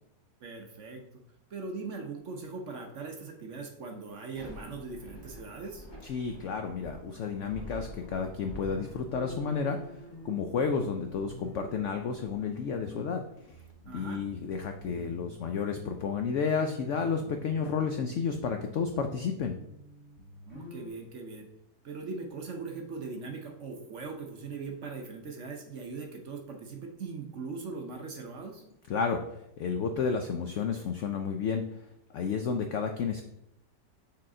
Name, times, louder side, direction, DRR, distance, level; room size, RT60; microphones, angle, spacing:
voice 1, 0.4-1.0 1.5-5.9 13.9-14.2 20.5-21.5 21.8-28.6, right 4 dB, 55° right, 3 dB, 0.9 m, -40 dB
Thunder / Rain, 4.2-17.3, right 1 dB, 15° left, 1.1 m, -50 dB
voice 2, 6.0-9.8 10.2-13.2 13.9-19.6 28.9-29.2 29.6-31.6 32.1-33.3, left 5 dB, 90° left, 6 dB, 0.6 m, -31 dB
sound 1, 6.6-7.8 8.1-13.2 13.5-15.9 16.1-20.9, left 3 dB, 35° left, 2.0 m, -48 dB
6.4 x 4.1 x 3.7 m, 0.81 s
omnidirectional pair, 1.8 m